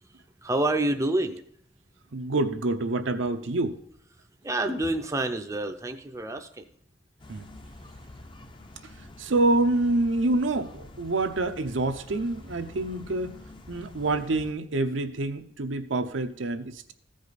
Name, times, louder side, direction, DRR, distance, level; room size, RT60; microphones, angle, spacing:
voice 1, 0.4-1.4 4.4-6.6, right 1 dB, 15° right, 6 dB, 0.5 m, -28 dB
voice 2, 2.1-3.8 7.3-7.5 8.8-8.9 9.2-13.4 13.7-16.9, right 2 dB, 80° right, 7 dB, 0.7 m, -27 dB
sound 1, 7.2-14.5, left 2 dB, 25° left, 0.6 m, -47 dB
14.5 x 5.1 x 4.1 m, 0.67 s
head